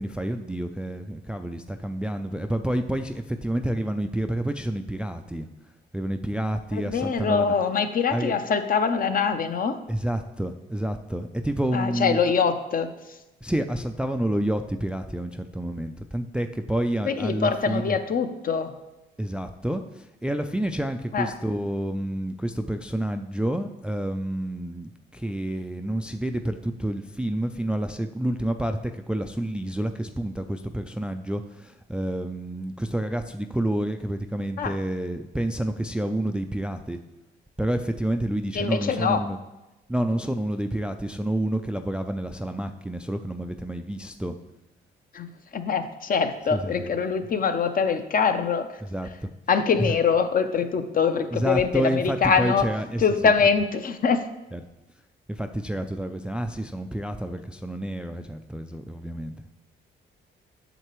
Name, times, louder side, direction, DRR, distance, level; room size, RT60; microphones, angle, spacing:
voice 1, 0.0-5.5 5.9-7.5 8.1-8.3 9.9-12.2 13.4-18.0 19.2-37.0 37.6-39.4 39.9-44.3 46.5-46.9 48.9-49.1 49.8-49.9 51.3-53.3 54.5-54.6 55.3-59.3, right 1 dB, 5° right, 7 dB, 0.3 m, -29 dB
voice 2, 6.7-9.8 11.7-12.9 17.1-18.7 21.1-21.3 34.6-34.7 38.5-39.2 45.1-48.7 49.5-52.7 53.0-54.2, left 6 dB, 45° left, 8 dB, 0.7 m, -24 dB
7.9 x 6.6 x 3.1 m, 0.99 s
cardioid pair, 90°, 20 cm